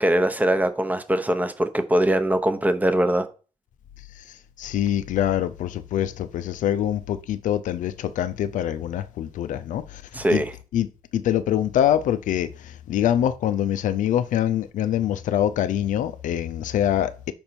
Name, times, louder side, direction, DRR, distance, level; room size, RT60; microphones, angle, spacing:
voice 1, 0.0-3.3 10.1-10.5, right 1 dB, 10° right, 0.8 m, -22 dB
voice 2, 4.6-10.0 10.3-10.4 10.7-10.9 11.1-17.3, left 11 dB, 80° left, 0.4 m, -24 dB
5.2 x 5.2 x 4.4 m
cardioid pair, 90°, 13 cm